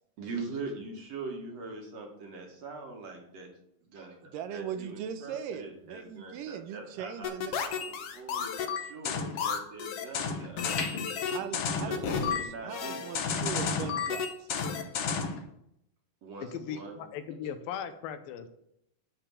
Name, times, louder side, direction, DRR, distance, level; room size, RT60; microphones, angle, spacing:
voice 1, 0.2-3.5 3.8-10.6 11.7-13.0 16.2-17.0, right 3 dB, 50° right, 1 dB, 2.8 m, -42 dB
voice 2, 4.2-7.5 11.3-14.5, right 8 dB, 80° right, 9 dB, 2.2 m, -40 dB
sound 1, 5.7-8.1 8.5-9.9 10.3-12.5 12.8-13.0, left 4 dB, 50° left, 1.5 m, -42 dB
sound 2, 7.2-15.4, left 6 dB, 70° left, 1.4 m, -32 dB
voice 3, 16.4-18.5, left 8 dB, 90° left, 9 dB, 2.7 m, -38 dB
12.5 x 5.0 x 7.2 m, 0.78 s
omnidirectional pair, 4.0 m